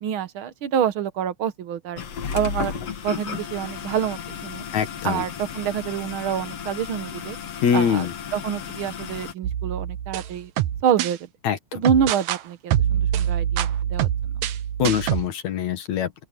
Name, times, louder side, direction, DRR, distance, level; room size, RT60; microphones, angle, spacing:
voice 1, 0.0-2.0 2.3-2.8 3.0-4.6 5.0-7.4 7.7-8.1 8.3-10.5 10.8-11.2 11.7-14.1, right 8 dB, 55° right, 1.6 m, -26 dB
sound 1, 2.0-9.3, left 7 dB, 60° left, 2.9 m, -34 dB
voice 2, 4.7-5.2 7.6-8.1 11.4-11.8 14.8-16.2, left 8 dB, 75° left, 2.8 m, -23 dB
sound 2, 9.4-11.1 11.8-12.4 12.7-15.3, right 10 dB, 80° right, 2.3 m, -25 dB
open air
omnidirectional pair, 3.3 m